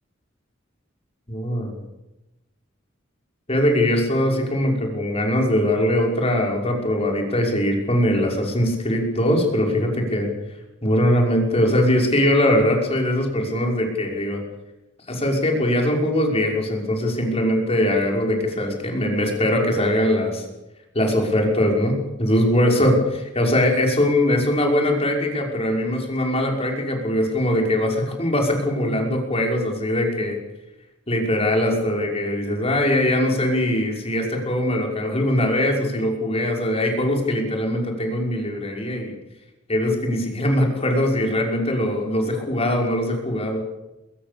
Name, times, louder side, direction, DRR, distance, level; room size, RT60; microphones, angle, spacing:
voice 1, 1.3-1.8 3.5-10.3 10.8-14.4 15.1-20.4 20.9-22.9 23.3-30.4 31.1-39.1 39.7-43.6, left 1 dB, 30° left, 1 dB, 5.8 m, -21 dB
23.0 x 22.0 x 7.0 m, 0.96 s
head